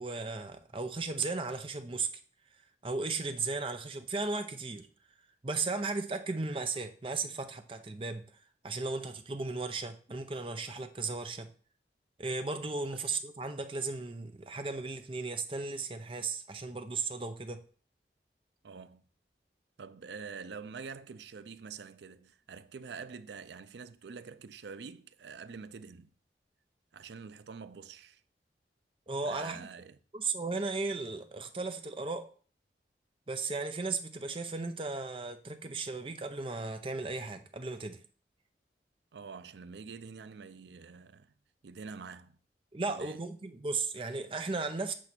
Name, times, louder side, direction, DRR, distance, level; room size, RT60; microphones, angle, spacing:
voice 1, 0.0-2.1 2.8-4.9 5.4-8.2 8.6-11.5 12.2-17.6 29.1-29.7 30.1-32.3 33.3-38.0 42.7-44.9, right 3 dB, 30° right, 0.6 m, -35 dB
voice 2, 18.6-19.0 19.8-26.1 26.9-28.2 29.3-30.0 39.1-41.3 41.6-42.4 42.9-43.3, right 5 dB, 80° right, 0.5 m, -46 dB
8.3 x 3.3 x 6.0 m
head